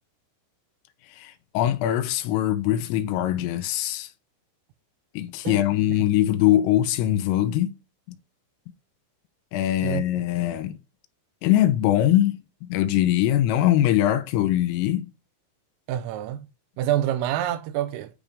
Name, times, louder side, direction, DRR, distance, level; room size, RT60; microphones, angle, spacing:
voice 1, 1.1-4.1 5.1-7.7 8.1-8.2 9.5-10.8 11.4-15.1, left 13 dB, 85° left, 3.4 m, -22 dB
voice 2, 15.9-16.5 16.8-18.1, right 12 dB, 90° right, 3.4 m, -27 dB
10.0 x 3.6 x 6.7 m
omnidirectional pair, 6.0 m